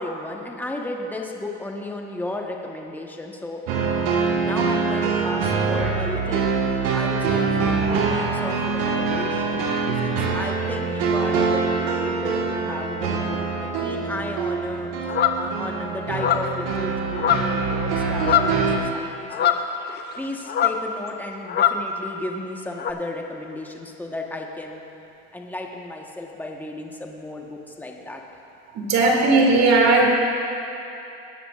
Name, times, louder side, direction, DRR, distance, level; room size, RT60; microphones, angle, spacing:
voice 1, 0.0-3.6 4.4-6.5 6.9-9.6 10.0-14.9 15.3-19.6 20.2-24.8 25.3-28.2, left 1 dB, 5° left, 0 dB, 1.2 m, -34 dB
sound 1, 3.7-18.8, right 4 dB, 70° right, 1.6 m, -24 dB
sound 2, 15.1-15.4 16.1-16.6 17.1-17.7 17.9-18.6 19.3-20.2 20.5-20.9 21.5-21.9 22.8-22.9, left 10 dB, 30° left, 0.6 m, -22 dB
voice 2, 28.7-30.1, right 3 dB, 50° right, 0 dB, 2.3 m, -17 dB
20.0 x 9.8 x 2.5 m, 2.9 s
supercardioid pair, 105°, 33 cm